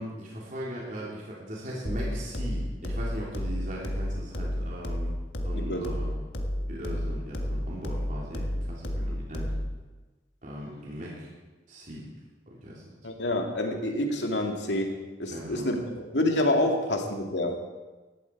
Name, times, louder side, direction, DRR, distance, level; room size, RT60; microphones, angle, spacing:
voice 1, 0.0-5.1 5.4-6.1 6.7-9.5 10.4-11.3 11.7-12.0 12.5-12.8 15.3-15.7, equal, 50° right, -4 dB, 3.5 m, -38 dB
sound 1, 1.8-9.8, equal, 65° left, 1.7 m, -32 dB
voice 2, 5.5-5.9 13.0-17.5, left 1 dB, 85° left, 2 dB, 2.4 m, -28 dB
18.0 x 13.5 x 4.8 m, 1.2 s
head